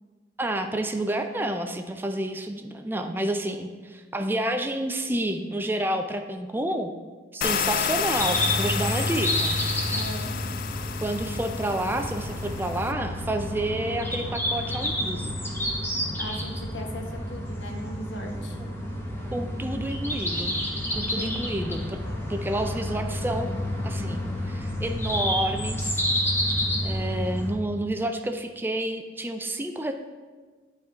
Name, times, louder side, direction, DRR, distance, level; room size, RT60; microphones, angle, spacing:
voice 1, 0.4-6.9 7.3-9.6 11.0-15.4 19.3-20.5 20.9-22.0 22.3-23.5 23.8-26.0 26.8-29.9, right 1 dB, 10° right, 6 dB, 0.4 m, -29 dB
sound 1, 7.4-12.9, left 8 dB, 50° left, 0.4 m, -31 dB
sound 2, 8.2-27.5, left 1 dB, 15° left, 1.1 m, -29 dB
voice 2, 9.9-10.3 16.2-18.6 21.2-21.4, left 1 dB, 80° left, 1 dB, 1.3 m, -38 dB
11.0 x 3.7 x 4.4 m, 1.4 s
head